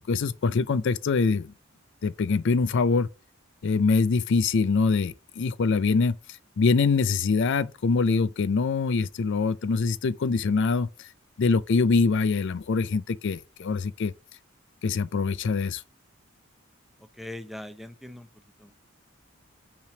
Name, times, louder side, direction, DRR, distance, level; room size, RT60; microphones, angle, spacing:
voice 1, 0.0-1.5 2.0-3.1 3.6-6.2 6.6-11.1 11.4-14.1 14.8-15.8, left 4 dB, 60° left, 0.4 m, -24 dB
voice 2, 17.1-18.3 18.6-18.7, left 1 dB, ahead, 0.5 m, -40 dB
5.5 x 3.5 x 5.8 m
head